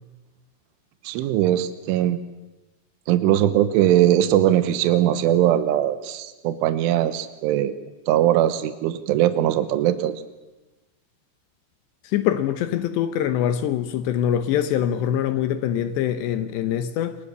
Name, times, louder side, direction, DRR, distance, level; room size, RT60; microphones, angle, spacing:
voice 1, 1.1-2.2 3.1-7.7 8.1-10.1, right 12 dB, 80° right, 3.5 m, -20 dB
voice 2, 12.0-17.2, left 10 dB, 75° left, 2.8 m, -24 dB
29.0 x 24.0 x 6.8 m
omnidirectional pair, 5.7 m